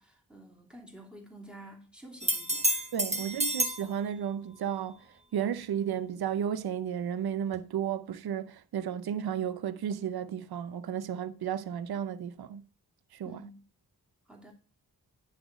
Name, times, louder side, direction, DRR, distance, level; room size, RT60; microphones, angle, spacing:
voice 1, 0.0-2.8 3.2-3.4 13.2-13.7 14.3-14.5, right 1 dB, 5° right, 2.8 m, -50 dB
sound 1, 2.2-3.9 7.5-7.6, right 1 dB, 20° right, 1.3 m, -29 dB
voice 2, 2.9-5.0 5.3-12.6 13.1-13.4, right 9 dB, 85° right, 0.6 m, -33 dB
10.0 x 4.2 x 6.0 m
cardioid pair, 50°, 37 cm